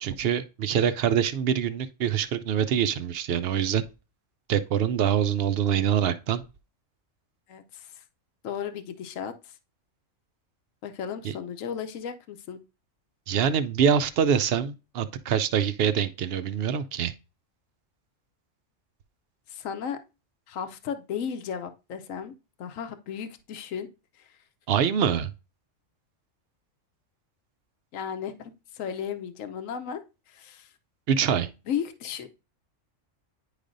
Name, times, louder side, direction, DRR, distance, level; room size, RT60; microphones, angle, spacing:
voice 1, 0.0-3.8 4.5-6.4 11.2-11.3 13.3-17.1 24.7-25.3 31.1-31.5, right 8 dB, 60° right, 0.7 m, -25 dB
voice 2, 7.5-8.0 8.4-9.5 10.8-12.6 19.5-20.0 20.5-22.3 22.6-23.9 24.2-24.3 27.9-30.0 30.3-30.7 31.7-32.3, left 8 dB, 80° left, 1.1 m, -35 dB
9.7 x 4.9 x 2.6 m
omnidirectional pair, 1.3 m